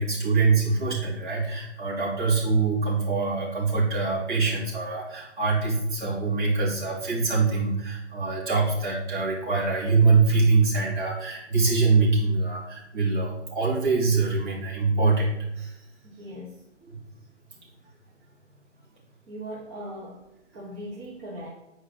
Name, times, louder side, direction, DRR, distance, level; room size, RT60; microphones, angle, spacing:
voice 1, 0.0-15.8 16.9-17.0, right 4 dB, 40° right, -4 dB, 2.7 m, -24 dB
voice 2, 16.0-16.6 19.3-21.5, equal, 15° right, -7 dB, 1.1 m, -39 dB
8.6 x 4.8 x 3.7 m, 0.86 s
figure-of-eight pair, 145°, 37 cm